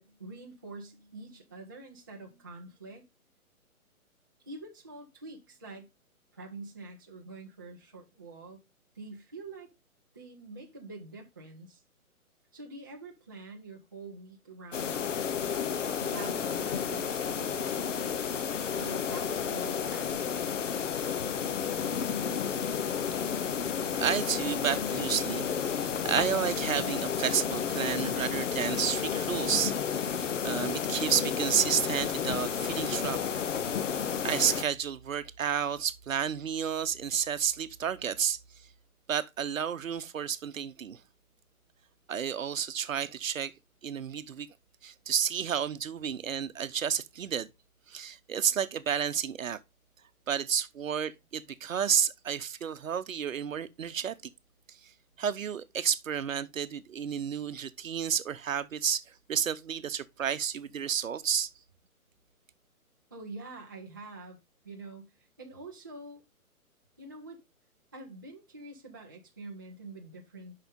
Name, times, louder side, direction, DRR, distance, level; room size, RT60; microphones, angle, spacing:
voice 1, 0.0-3.0 4.5-5.9 6.3-8.6 9.0-9.7 10.1-11.8 12.5-15.0 15.7-17.8 18.7-20.7 63.1-64.4 64.6-66.2 67.0-67.4 67.9-70.5, right 3 dB, 15° right, 0.4 m, -46 dB
sound 1, 14.7-34.6, left 7 dB, 55° left, 0.9 m, -31 dB
voice 2, 24.0-33.2 34.2-38.4 39.1-41.0 42.1-43.5 43.8-44.5 44.8-47.5 47.9-49.6 50.3-54.3 54.7-54.9 55.2-59.0 59.3-61.5, right 8 dB, 60° right, 0.8 m, -31 dB
6.9 x 5.7 x 3.7 m
figure-of-eight pair, 135°, 44 cm